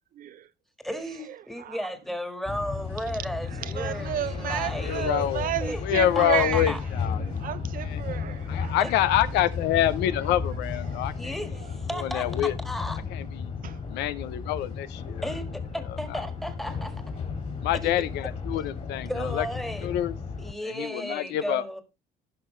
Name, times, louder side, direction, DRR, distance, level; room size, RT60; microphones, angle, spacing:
voice 1, 0.1-0.5 0.9-1.9 3.4-6.8 7.2-9.0 10.4-10.5 10.9-11.0 11.5-11.7 13.6-13.8 17.6-17.7, right 11 dB, 55° right, 0.6 m, -33 dB
voice 2, 0.8-5.3 5.6-5.8 6.1-6.8 8.8-8.9 11.1-13.0 15.2-17.0 17.7-17.9 19.1-19.9 20.4-21.8, equal, ahead, 1.7 m, -34 dB
sound 1, 2.4-20.5, left 5 dB, 40° left, 3.2 m, -34 dB
voice 3, 4.8-5.5 5.9-7.5 8.5-11.3 12.0-12.5 13.1-13.5 13.9-15.2 16.1-16.2 17.6-19.5 19.8-20.1 20.6-21.6, left 12 dB, 85° left, 0.7 m, -26 dB
16.0 x 5.8 x 3.2 m
cardioid pair, 110°, 17 cm